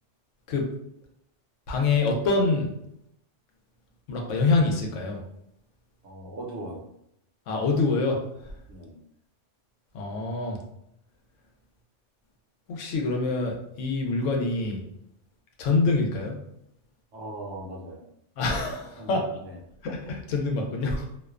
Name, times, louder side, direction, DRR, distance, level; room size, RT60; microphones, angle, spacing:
voice 1, 1.7-2.7 4.1-5.2 7.5-8.2 9.9-10.6 12.7-14.8 15.6-16.4 18.4-19.2 19.8-21.0, left 3 dB, 80° left, 1 dB, 0.9 m, -25 dB
voice 2, 6.0-6.9 8.7-9.0 17.1-18.0 19.0-19.6, right 1 dB, 70° right, -2 dB, 0.9 m, -39 dB
2.5 x 2.1 x 2.3 m, 0.77 s
omnidirectional pair, 1.3 m